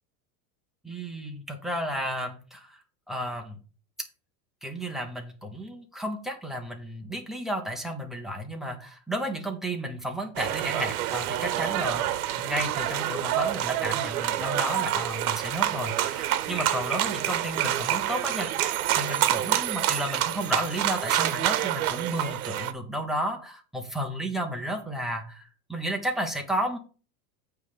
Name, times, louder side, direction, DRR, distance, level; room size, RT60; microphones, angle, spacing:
voice 1, 0.8-2.8 3.1-3.6 4.6-12.0 12.4-25.4 25.7-26.8, right 1 dB, ahead, 4 dB, 0.7 m, -32 dB
sound 1, 10.4-22.7, right 12 dB, 70° right, 1.0 m, -27 dB
8.9 x 3.4 x 6.5 m, 0.36 s
supercardioid pair, 165°, 45 cm